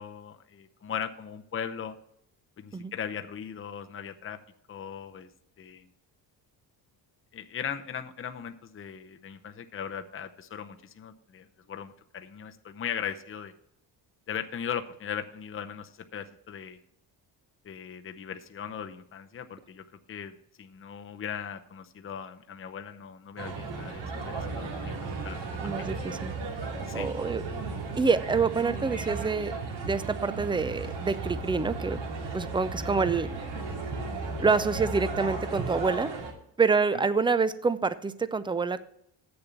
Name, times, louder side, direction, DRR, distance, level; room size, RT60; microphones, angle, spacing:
voice 1, 0.0-2.0 2.6-4.4 4.7-5.3 5.6-5.9 7.3-13.5 14.3-16.8 17.6-25.4 25.8-25.9 26.9-27.1, left 8 dB, 30° left, 7 dB, 0.7 m, -38 dB
sound 1, 23.4-36.3, right 3 dB, 70° right, 2.6 m, -35 dB
voice 2, 25.6-26.4 26.9-27.4 28.0-29.5 29.8-32.0 32.3-33.3 34.4-36.1 36.6-38.8, right 4 dB, 10° right, 15 dB, 0.4 m, -27 dB
8.0 x 6.9 x 6.8 m, 0.73 s
cardioid pair, 110°, 44 cm